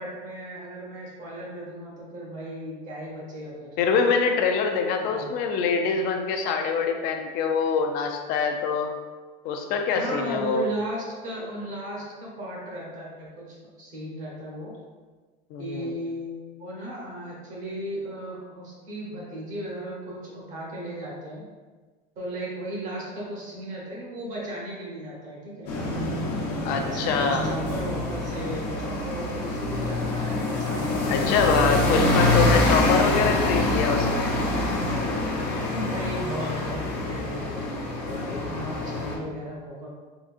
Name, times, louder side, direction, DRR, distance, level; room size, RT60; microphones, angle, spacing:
voice 1, 0.0-3.7 5.1-5.2 9.9-14.7 15.6-21.4 22.2-25.8 26.8-32.5 35.6-39.9, equal, 35° right, -4 dB, 1.0 m, -36 dB
voice 2, 3.8-8.9 9.4-10.6 15.5-15.9 26.6-27.5 31.1-34.3, left 5 dB, 45° left, 4 dB, 0.4 m, -24 dB
sound 1, 25.7-39.2, left 2 dB, 75° left, 0.9 m, -26 dB
3.8 x 2.6 x 2.4 m, 1.4 s
supercardioid pair, 150°, 21 cm